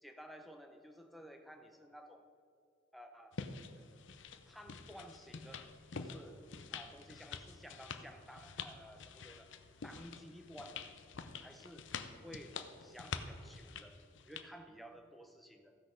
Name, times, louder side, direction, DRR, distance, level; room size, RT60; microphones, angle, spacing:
voice 1, 0.0-2.3 2.9-3.4 4.5-5.7 5.9-6.4 6.7-9.5 9.8-10.8 11.4-14.0 14.3-15.8, equal, ahead, 4 dB, 0.7 m, -54 dB
sound 1, 3.3-14.5, left 5 dB, 70° left, 0.6 m, -47 dB
15.0 x 6.3 x 5.1 m, 2.3 s
head